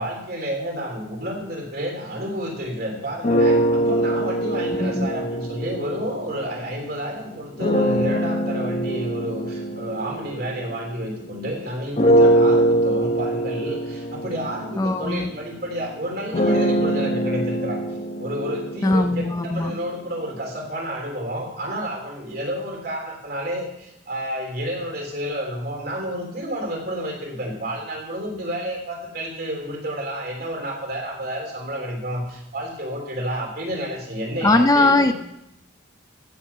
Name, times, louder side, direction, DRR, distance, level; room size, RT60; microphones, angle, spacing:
voice 1, 0.0-17.8 18.2-35.1, equal, 50° right, 0 dB, 3.4 m, -30 dB
sound 1, 3.2-6.8 7.6-11.4 12.0-19.9, right 1 dB, 35° left, 0.8 m, -23 dB
voice 2, 14.8-15.3 18.8-19.8 34.4-35.1, left 2 dB, 20° left, 8 dB, 0.4 m, -19 dB
15.0 x 7.6 x 5.8 m, 0.82 s
head